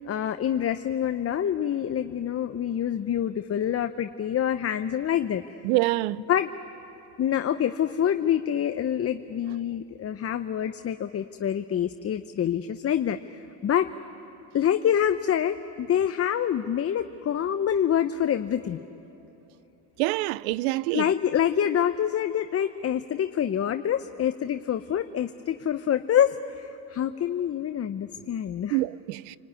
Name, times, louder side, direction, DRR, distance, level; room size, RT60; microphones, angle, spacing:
voice 1, 0.1-5.4 6.3-6.5 7.2-13.9 14.5-18.8 20.9-28.8, left 9 dB, 30° left, 0.8 m, -26 dB
voice 2, 5.6-6.2 20.0-21.1 28.7-29.4, right 19 dB, 70° right, 0.7 m, -26 dB
29.5 x 20.0 x 9.7 m
hypercardioid pair, 90°, 48 cm